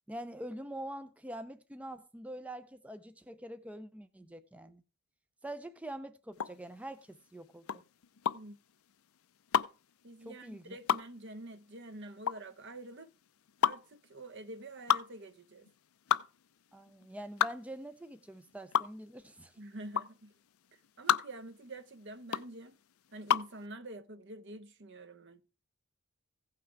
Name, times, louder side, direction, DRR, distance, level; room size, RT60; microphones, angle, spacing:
voice 1, 0.1-4.8 5.4-7.8 10.2-10.8 16.7-19.6, right 1 dB, 5° right, 0.4 m, -45 dB
sound 1, 6.3-23.6, left 8 dB, 70° left, 0.5 m, -32 dB
voice 2, 10.0-13.1 13.6-15.7 19.6-20.3 21.0-22.8 23.1-25.4, right 2 dB, 50° right, 0.8 m, -47 dB
15.5 x 5.8 x 4.6 m
head